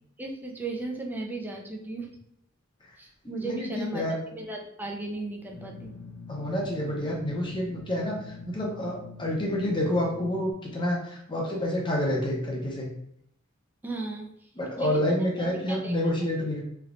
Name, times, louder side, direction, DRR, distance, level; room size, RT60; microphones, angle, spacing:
voice 1, 0.2-2.1 3.0-5.9 13.8-14.5 14.8-15.9, right 2 dB, 10° right, 1 dB, 0.4 m, -36 dB
voice 2, 3.4-4.2 6.3-12.9 14.6-16.6, left 1 dB, 25° left, -1 dB, 0.7 m, -28 dB
sound 1, 5.5-10.5, left 4 dB, 80° left, 1.0 m, -43 dB
3.3 x 2.9 x 2.5 m, 0.75 s
head